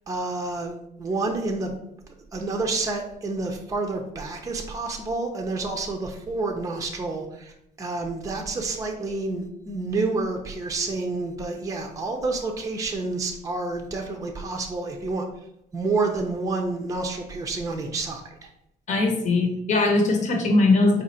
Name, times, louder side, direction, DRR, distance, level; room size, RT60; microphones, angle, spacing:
voice 1, 0.1-0.7 1.0-1.7 2.3-15.3 15.7-18.5, right 3 dB, 20° right, 2 dB, 0.6 m, -29 dB
voice 2, 18.9-21.0, left 2 dB, 45° left, 2 dB, 0.9 m, -20 dB
4.1 x 2.5 x 4.2 m, 0.79 s
cardioid pair, 110°, 17 cm